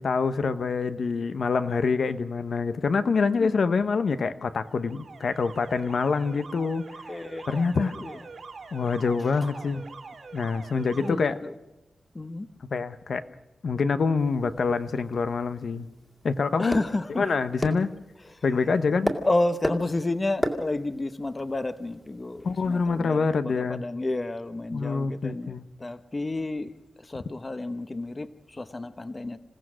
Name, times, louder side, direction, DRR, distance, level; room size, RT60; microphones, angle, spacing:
voice 1, 0.0-6.9 7.5-7.9 8.7-9.8 10.3-11.4 12.7-13.3 13.6-15.9 16.2-16.8 17.2-17.9 18.4-19.1 22.4-23.8 24.7-25.6, left 4 dB, 60° left, 0.9 m, -26 dB
Alarm, 4.6-11.1, right 4 dB, 50° right, 2.4 m, -44 dB
voice 2, 7.1-7.7 8.0-8.2 9.6-9.7 11.0-11.5 12.1-12.5 16.6-17.3 19.3-23.2 23.4-26.7 27.1-29.4, left 2 dB, 20° left, 0.8 m, -31 dB
sound 1, 14.2-23.0, equal, 5° left, 2.1 m, -36 dB
27.5 x 17.0 x 6.3 m
wide cardioid pair, 175°, 0 cm